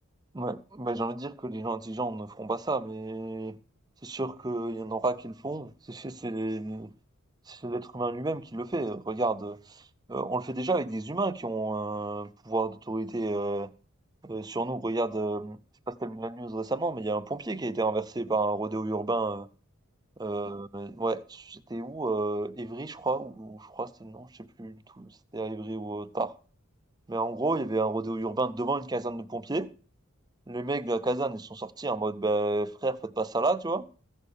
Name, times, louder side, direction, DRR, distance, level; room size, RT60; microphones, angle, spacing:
voice 1, 0.3-3.6 4.0-6.9 7.5-13.7 14.2-15.6 15.9-19.5 20.2-26.4 27.1-29.7 30.5-33.9, right 2 dB, 20° right, 0.6 m, -31 dB
15.5 x 6.5 x 6.9 m
head